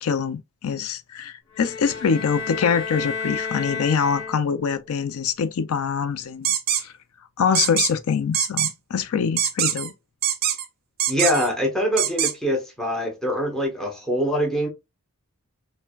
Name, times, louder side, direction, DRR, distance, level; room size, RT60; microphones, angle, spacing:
voice 1, 0.0-6.5 6.8-6.9 7.4-9.9, left 6 dB, 75° left, 0.4 m, -24 dB
sound 1, 1.5-4.8, left 5 dB, 55° left, 0.9 m, -32 dB
sound 2, 6.4-6.8 7.5-7.9 8.3-8.7 9.4-9.9 10.2-10.6 11.0-11.5 12.0-12.3, right 10 dB, 45° right, 0.4 m, -23 dB
voice 2, 11.1-14.7, equal, ahead, 0.8 m, -24 dB
5.5 x 2.1 x 2.2 m
head